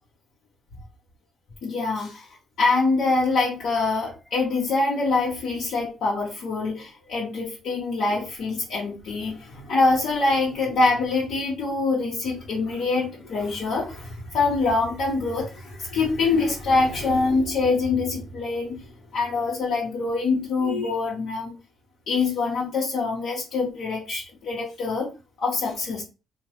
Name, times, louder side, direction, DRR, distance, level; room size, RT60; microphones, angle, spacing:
voice 1, 1.6-2.3 2.6-18.8 19.1-21.5 22.1-25.1 25.4-26.0, left 3 dB, 70° left, -4 dB, 0.8 m, -24 dB
2.8 x 2.1 x 3.0 m, 0.31 s
cardioid pair, 90°, 0 cm